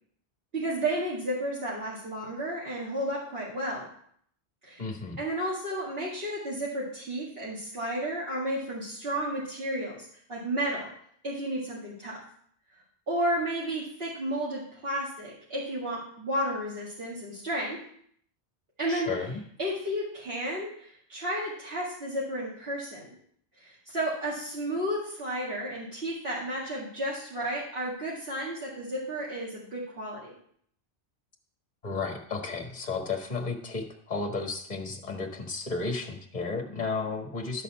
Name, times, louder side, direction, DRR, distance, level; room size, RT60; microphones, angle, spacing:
voice 1, 0.5-3.9 4.6-4.8 5.2-10.9 11.2-12.2 13.1-17.8 18.8-19.1 19.6-23.1 23.6-30.3, right 1 dB, 60° right, -8 dB, 2.4 m, -32 dB
voice 2, 4.8-5.2 18.9-19.4 31.8-37.6, left 4 dB, 40° left, 3 dB, 1.6 m, -33 dB
12.0 x 4.2 x 7.2 m, 0.64 s
omnidirectional pair, 1.1 m